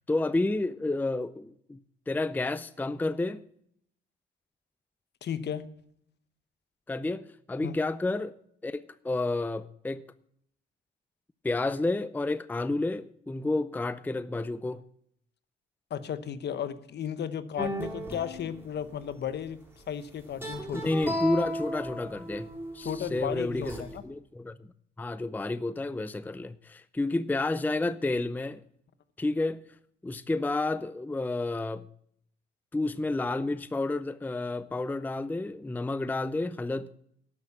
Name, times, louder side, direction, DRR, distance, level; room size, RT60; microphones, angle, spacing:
voice 1, 0.1-1.8 2.1-3.4 6.9-8.4 8.6-10.0 11.4-14.8 20.7-22.5 22.7-24.7 25.0-28.6 29.2-29.6 30.0-31.9 32.7-37.0, left 2 dB, 10° left, 0.5 m, -30 dB
voice 2, 5.2-5.7 7.6-7.8 15.9-19.6 19.9-20.9 22.8-24.0, left 9 dB, 60° left, 0.9 m, -34 dB
sound 1, 17.6-19.3 20.3-24.0, equal, 10° right, 4.4 m, -36 dB
12.0 x 6.6 x 7.1 m
cardioid pair, 90°, 20 cm